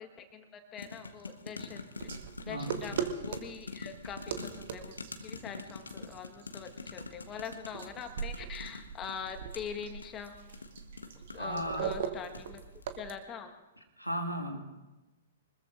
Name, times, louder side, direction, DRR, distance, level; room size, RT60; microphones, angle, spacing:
voice 1, 0.0-2.1 2.5-4.9 5.2-10.4 11.3-12.6 13.0-13.5, left 7 dB, 20° left, 5 dB, 1.4 m, -43 dB
sound 1, 0.8-11.6 12.1-12.6 12.8-12.9, left 3 dB, 75° left, 1.1 m, -45 dB
sound 2, 2.0-13.1, right 8 dB, 50° right, 1.2 m, -41 dB
voice 2, 2.5-2.8 11.4-11.9 14.0-14.6, equal, 90° right, 3 dB, 2.1 m, -35 dB
24.5 x 20.5 x 2.6 m, 1.1 s
figure-of-eight pair, 110°, 0 cm